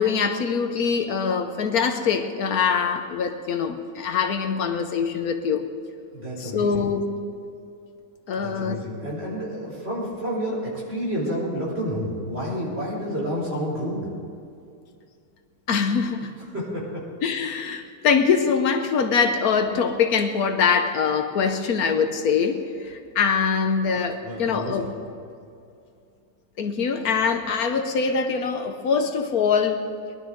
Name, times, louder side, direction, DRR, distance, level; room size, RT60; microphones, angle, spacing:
voice 1, 0.0-5.7 6.4-7.0 8.3-8.8 15.7-16.3 17.2-24.9 26.6-29.8, left 6 dB, 70° left, 7 dB, 1.3 m, -23 dB
voice 2, 6.1-6.9 8.3-14.1 16.5-17.0 24.2-24.9, equal, 40° right, -5 dB, 4.7 m, -30 dB
21.5 x 12.0 x 3.8 m, 2.4 s
omnidirectional pair, 1.7 m